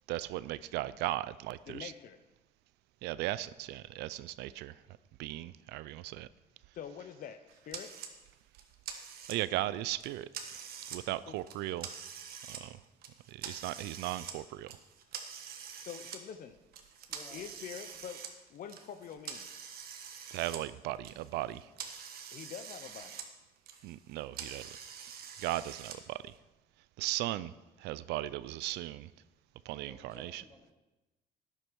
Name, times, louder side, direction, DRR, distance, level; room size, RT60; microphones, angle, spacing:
voice 1, 0.1-1.9 3.0-4.8 5.2-6.3 9.3-10.3 10.6-11.9 12.5-12.8 13.3-14.7 20.3-21.7 23.8-24.7 25.4-26.4 27.0-27.5 27.8-29.1 29.7-30.4, right 15 dB, 85° right, 17 dB, 0.4 m, -37 dB
voice 2, 1.7-2.2 6.7-7.9 11.3-11.4 15.8-16.6 17.3-18.2 18.5-19.5 22.3-23.2, left 8 dB, 55° left, 9 dB, 0.7 m, -45 dB
sound 1, 7.7-8.1 8.5-9.6 10.0-11.0 11.4-12.6 13.0-14.4 14.7-16.2 16.7-20.6 20.9-23.3 23.6-26.0, right 7 dB, 65° right, 1.4 m, -45 dB
voice 3, 17.1-17.4 29.8-30.7, left 2 dB, 20° left, 1 dB, 2.6 m, -55 dB
12.0 x 10.0 x 4.6 m, 1.1 s
cardioid pair, 110°, 17 cm